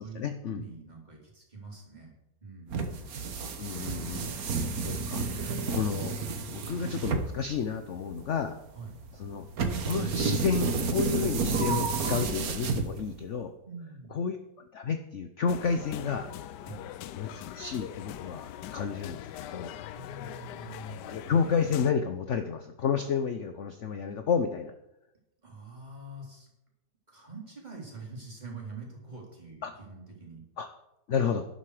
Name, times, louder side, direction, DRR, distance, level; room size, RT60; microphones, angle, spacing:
voice 1, 0.0-0.7 3.6-4.4 4.8-6.2 6.5-8.6 9.1-9.5 9.8-13.5 14.1-14.4 14.7-16.3 17.1-17.3 17.6-19.7 21.1-24.7 29.6-29.7 30.6-30.7 31.1-31.4, left 6 dB, 55° left, 8 dB, 1.0 m, -31 dB
voice 2, 0.5-2.1 2.4-3.1 8.7-9.0 13.7-14.1 16.6-16.8 19.9-21.2 25.4-26.5 27.1-30.4, right 3 dB, 25° right, -2 dB, 3.8 m, -45 dB
sound 1, 2.7-13.3, right 4 dB, 60° right, 1.6 m, -31 dB
sound 2, 15.5-21.9, left 12 dB, 75° left, 1.2 m, -42 dB
12.0 x 11.5 x 4.9 m, 0.87 s
omnidirectional pair, 1.9 m